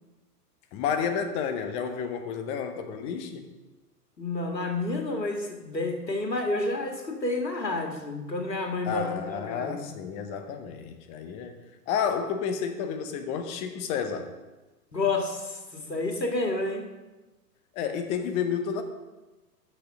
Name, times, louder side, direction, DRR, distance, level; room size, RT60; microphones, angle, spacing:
voice 1, 0.7-3.5 8.9-11.6 11.9-14.3 17.7-18.8, left 7 dB, 15° left, 8 dB, 0.5 m, -31 dB
voice 2, 4.2-9.9 14.9-16.8, left 2 dB, 85° left, 3 dB, 2.1 m, -30 dB
13.0 x 6.3 x 6.5 m, 1.1 s
figure-of-eight pair, 110°, 49 cm